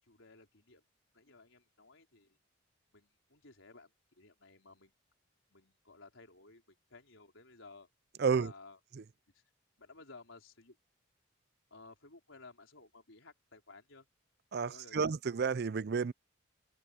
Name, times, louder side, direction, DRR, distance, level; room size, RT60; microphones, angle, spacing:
voice 1, 0.0-0.8 1.1-2.4 2.9-4.9 5.5-7.9 8.3-8.8 9.3-9.4 9.8-10.8 11.7-14.1 14.7-15.1, left 3 dB, 70° left, 4.2 m, -57 dB
voice 2, 8.2-8.5 14.5-16.1, right 5 dB, 50° right, 0.4 m, -31 dB
head